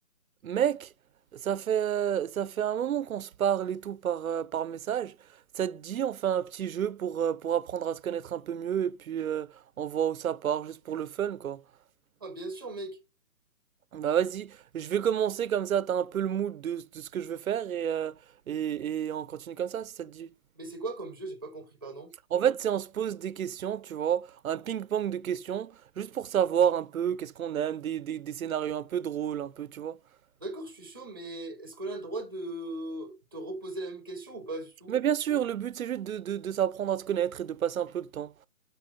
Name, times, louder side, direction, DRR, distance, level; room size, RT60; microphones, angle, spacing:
voice 1, 0.4-0.9 1.4-5.1 5.5-9.5 9.8-11.6 13.9-18.1 18.5-20.3 22.3-30.0 34.9-38.3, right 9 dB, 70° right, 0.6 m, -30 dB
voice 2, 12.2-13.0 20.5-22.1 30.4-35.0, right 2 dB, 15° right, 0.8 m, -38 dB
6.9 x 5.9 x 5.2 m
hypercardioid pair, 170°, 43 cm